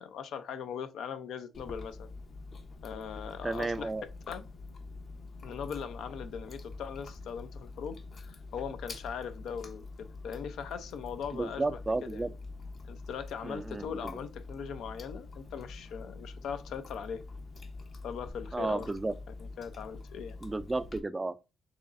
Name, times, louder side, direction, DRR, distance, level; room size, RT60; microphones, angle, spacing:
voice 1, 0.0-2.1 2.8-3.9 4.3-4.5 5.4-12.3 12.9-17.2 18.0-18.9 19.4-20.4, left 7 dB, 75° left, 0.6 m, -40 dB
Chewing mastication, 1.5-21.0, left 3 dB, 45° left, 0.9 m, -46 dB
voice 2, 3.4-4.0 11.3-12.3 13.4-14.2 18.5-19.1 20.4-21.6, right 2 dB, 15° right, 0.3 m, -33 dB
6.2 x 3.1 x 2.5 m
cardioid pair, 110°, 0 cm